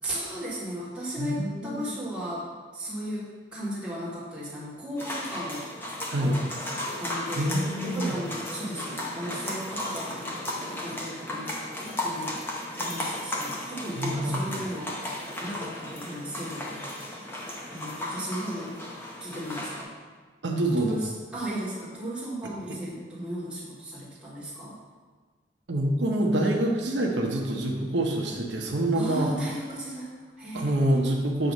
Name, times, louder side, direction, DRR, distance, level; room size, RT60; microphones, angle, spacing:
voice 1, 0.0-2.5 2.7-5.6 6.2-6.3 7.0-7.6 7.9-10.3 10.7-11.5 12.0-12.4 12.8-16.9 17.7-18.7 19.2-19.9 20.8-24.8 28.9-30.8, equal, 5° right, -9 dB, 1.6 m, -35 dB
voice 2, 1.2-1.9 6.1-6.4 7.4-8.2 14.0-14.6 20.4-21.0 25.7-29.3 30.5-31.5, right 1 dB, 80° right, 0 dB, 0.8 m, -26 dB
sound 1, 5.0-19.8, left 1 dB, 10° left, 0.7 m, -35 dB
7.7 x 2.9 x 5.2 m, 1.5 s
head